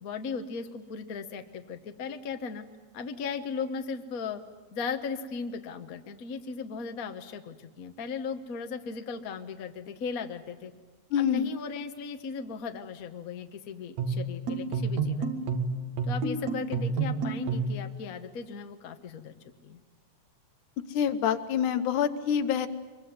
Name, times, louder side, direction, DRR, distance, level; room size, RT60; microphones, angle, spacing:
voice 1, 0.0-2.6 2.9-4.4 4.7-10.7 11.2-15.4 16.1-19.3 19.6-19.8, left 5 dB, 90° left, 7 dB, 0.7 m, -37 dB
voice 2, 11.1-11.5 20.9-22.7, left 8 dB, 75° left, 11 dB, 2.4 m, -26 dB
sound 1, 14.0-17.8, right 4 dB, 60° right, 3.0 m, -29 dB
24.0 x 23.0 x 9.6 m, 1.3 s
omnidirectional pair, 3.8 m